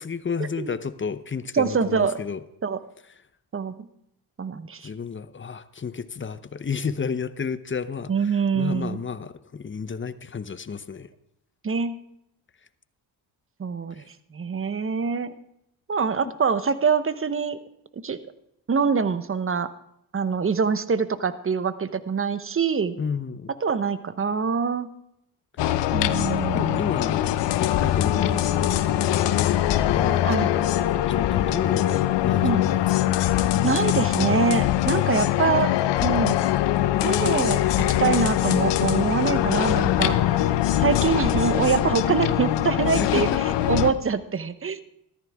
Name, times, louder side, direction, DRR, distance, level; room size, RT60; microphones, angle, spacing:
voice 1, 0.0-2.4 4.8-11.1 13.9-14.1 23.0-23.5 26.5-29.5 29.8-30.7 31.0-33.1 43.0-43.4, left 5 dB, 25° left, 14 dB, 0.8 m, -32 dB
voice 2, 1.5-2.2 2.6-2.8 3.5-3.9 4.4-4.9 8.1-9.0 11.6-11.9 13.6-14.0 14.3-15.3 15.9-17.6 18.0-18.2 18.7-19.7 20.1-23.0 23.6-24.9 25.9-26.8 30.2-30.5 32.4-32.6 33.6-35.7 36.0-36.4 37.0-37.6 38.0-40.4 40.8-43.3 43.7-44.8, right 5 dB, 30° right, 13 dB, 1.0 m, -24 dB
sound 1, 25.6-43.9, left 13 dB, 75° left, 0.8 m, -22 dB
sound 2, 37.8-43.8, right 4 dB, 80° right, 3.0 m, -41 dB
14.5 x 13.5 x 3.6 m, 0.81 s
supercardioid pair, 65°, 43 cm